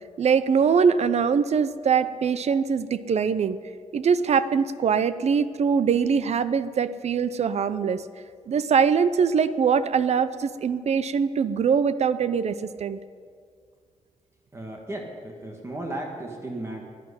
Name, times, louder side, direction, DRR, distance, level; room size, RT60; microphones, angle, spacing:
voice 1, 0.2-3.6 3.9-8.0 8.5-13.0, right 6 dB, 60° right, 14 dB, 0.6 m, -22 dB
voice 2, 14.5-16.8, right 1 dB, 20° right, 1 dB, 1.6 m, -35 dB
12.0 x 11.0 x 9.7 m, 2.1 s
wide cardioid pair, 165°, 12 cm